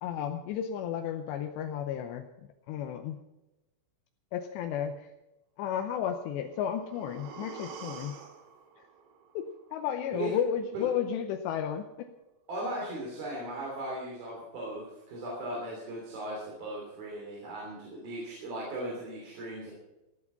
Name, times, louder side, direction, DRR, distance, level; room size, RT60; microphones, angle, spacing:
voice 1, 0.0-2.3 2.7-3.2 4.3-5.1 5.6-8.2 9.3-12.1, left 9 dB, 85° left, 6 dB, 2.5 m, -33 dB
sound 1, 6.3-10.3 10.6-10.7, right 6 dB, 85° right, 4.3 m, -48 dB
voice 2, 12.5-19.7, right 1 dB, 50° right, -3 dB, 4.6 m, -37 dB
16.0 x 9.6 x 5.6 m, 1.0 s
omnidirectional pair, 5.9 m